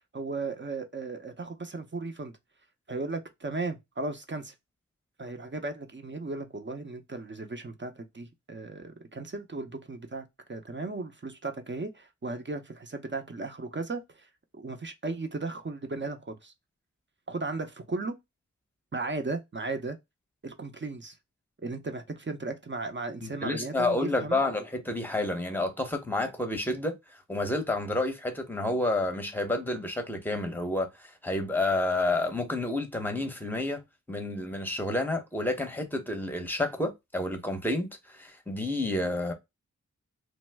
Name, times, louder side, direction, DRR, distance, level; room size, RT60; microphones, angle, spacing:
voice 1, 0.1-2.3 2.9-4.5 5.2-14.3 14.5-16.5 17.3-18.2 18.9-20.0 20.4-21.1 21.6-24.4, right 3 dB, 40° right, 0.6 m, -36 dB
voice 2, 23.2-27.0 27.3-33.8 34.1-39.3, left 2 dB, 5° left, 0.7 m, -30 dB
3.0 x 2.0 x 3.3 m
wide cardioid pair, 65°, 31 cm